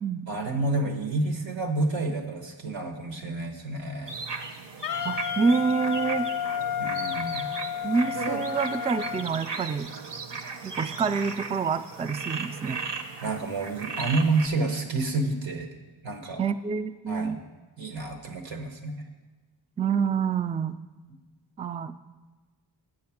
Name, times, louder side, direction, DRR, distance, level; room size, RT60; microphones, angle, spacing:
voice 1, 0.3-4.2 6.8-7.6 13.2-15.7 16.0-16.4 17.1-17.4 17.8-19.0, right 2 dB, 85° right, 5 dB, 1.2 m, -29 dB
sound 1, 4.1-14.5, right 4 dB, 65° right, 0.9 m, -36 dB
Wind instrument woodwind instrument, 4.8-9.3, left 9 dB, 50° left, 0.5 m, -31 dB
voice 2, 5.0-6.3 7.8-9.9 10.6-12.8 16.4-17.4 19.8-20.8 21.6-21.9, right 5 dB, 15° right, 10 dB, 0.3 m, -27 dB
7.7 x 6.6 x 5.8 m, 1.2 s
cardioid pair, 45°, 45 cm